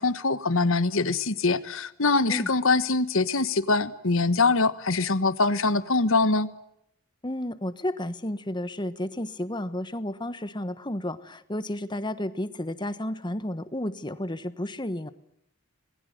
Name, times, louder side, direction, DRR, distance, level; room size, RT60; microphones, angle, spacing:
voice 1, 0.0-6.5, left 3 dB, 60° left, 14 dB, 1.3 m, -23 dB
voice 2, 7.2-15.1, left 1 dB, 20° left, 13 dB, 1.2 m, -32 dB
27.5 x 20.5 x 7.9 m, 0.79 s
head